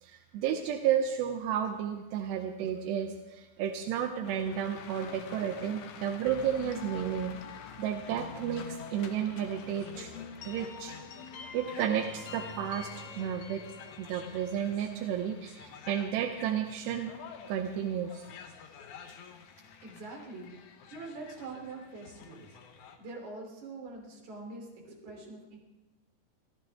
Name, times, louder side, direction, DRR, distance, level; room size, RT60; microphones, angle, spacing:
voice 1, 0.0-7.3 7.8-10.1 10.5-10.9 11.5-13.6 14.0-17.1 17.5-18.3, right 9 dB, 85° right, 5 dB, 3.0 m, -32 dB
sound 1, 4.2-23.0, left 7 dB, 65° left, 2.0 m, -50 dB
sound 2, 6.3-16.0, left 6 dB, 90° left, 1.5 m, -47 dB
voice 2, 19.8-20.5 20.9-22.6 23.0-25.6, right 3 dB, 45° right, 0 dB, 4.2 m, -44 dB
26.0 x 15.0 x 3.5 m, 1.1 s
omnidirectional pair, 4.8 m